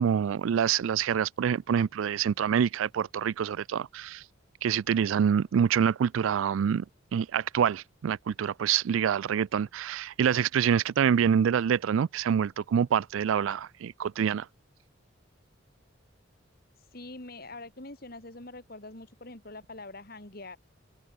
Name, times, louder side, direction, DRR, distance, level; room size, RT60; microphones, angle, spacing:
voice 1, 0.0-4.2 4.6-6.8 7.1-14.5, right 8 dB, 85° right, 0.3 m, -26 dB
voice 2, 16.9-20.6, left 2 dB, 50° left, 2.8 m, -44 dB
head